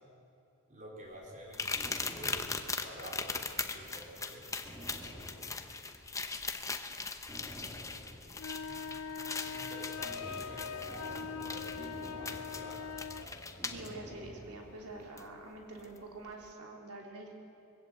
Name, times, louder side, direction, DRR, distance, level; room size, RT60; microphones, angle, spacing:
voice 1, 0.7-3.4 3.7-4.5 8.6-9.0 9.4-13.5, right 1 dB, 35° right, -1 dB, 4.2 m, -50 dB
sound 1, 1.5-13.9 15.2-15.3 15.8-16.0, left 4 dB, 15° left, 0.9 m, -40 dB
sound 2, 1.5-3.9 4.2-4.3 4.6-6.3 6.7-6.8 7.3-14.5, equal, 5° right, 3.1 m, -50 dB
sound 3, 8.3-13.3, left 6 dB, 70° left, 0.6 m, -42 dB
voice 2, 13.7-17.4, right 2 dB, 85° right, 0 dB, 3.2 m, -46 dB
21.5 x 16.0 x 8.0 m, 2.8 s
head